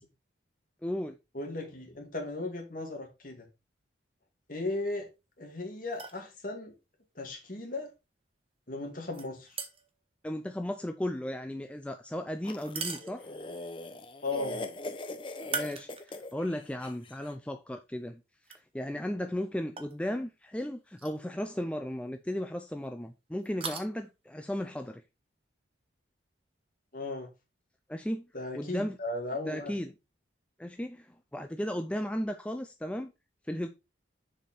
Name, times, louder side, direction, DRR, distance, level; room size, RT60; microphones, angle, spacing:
voice 1, 0.8-1.2 10.2-13.3 15.4-18.2 18.7-25.0 27.9-28.3 28.6-29.0 29.3-29.9 30.6-33.1 33.5-33.7, left 1 dB, 5° left, 0.4 m, -35 dB
voice 2, 1.3-3.5 4.5-5.1 5.4-6.7 7.2-7.9 8.7-9.6 14.2-14.6 26.9-27.3 28.3-29.7, left 2 dB, 45° left, 2.4 m, -36 dB
sound 1, 5.9-6.3 9.1-10.0 12.5-13.6 15.4-16.4 16.9-17.0 18.4-18.6 19.8-20.0 20.9-21.2 21.5-21.6 23.4-23.9, right 5 dB, 30° right, 1.0 m, -39 dB
sound 2, 12.4-17.2, left 2 dB, 25° left, 0.7 m, -41 dB
6.8 x 5.0 x 4.4 m
head